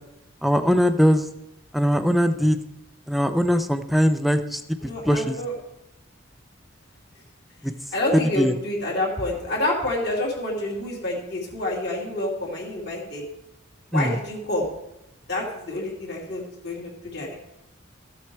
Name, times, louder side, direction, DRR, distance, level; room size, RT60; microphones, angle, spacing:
voice 1, 0.4-1.3 1.7-2.6 3.1-5.4 7.6-7.7 8.1-8.5 13.9-14.1, equal, ahead, 9 dB, 0.5 m, -21 dB
voice 2, 4.8-5.5 7.9-13.2 13.9-14.7 15.3-17.3, left 1 dB, 55° left, -2 dB, 2.6 m, -28 dB
13.5 x 7.5 x 4.6 m, 0.89 s
head